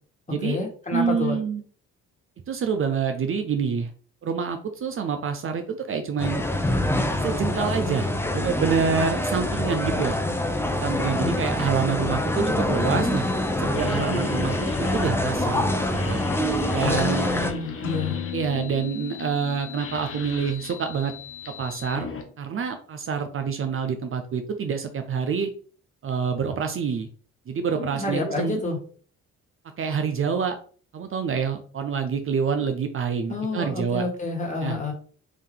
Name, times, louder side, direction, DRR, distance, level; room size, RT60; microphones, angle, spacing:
voice 1, 0.3-1.4 11.0-11.4 16.8-18.2 27.7-28.8 33.3-34.9, left 3 dB, 25° left, 0 dB, 1.6 m, -29 dB
voice 2, 0.9-1.6 2.5-3.9 4.2-6.4 7.2-10.2 10.8-13.2 13.6-15.8 16.1-16.2 16.7-17.3 18.3-21.1 21.6-22.1 22.4-25.5 26.0-27.1 27.5-28.6 29.8-30.6 30.9-34.0 34.6-34.8, right 6 dB, 45° right, 7 dB, 0.5 m, -27 dB
sound 1, 6.2-17.5, left 1 dB, 10° left, 0.6 m, -25 dB
sound 2, 13.7-22.2, left 5 dB, 45° left, 0.9 m, -38 dB
sound 3, 17.8-21.6, left 8 dB, 85° left, 0.7 m, -37 dB
3.6 x 2.7 x 3.7 m, 0.43 s
cardioid pair, 90°, 30 cm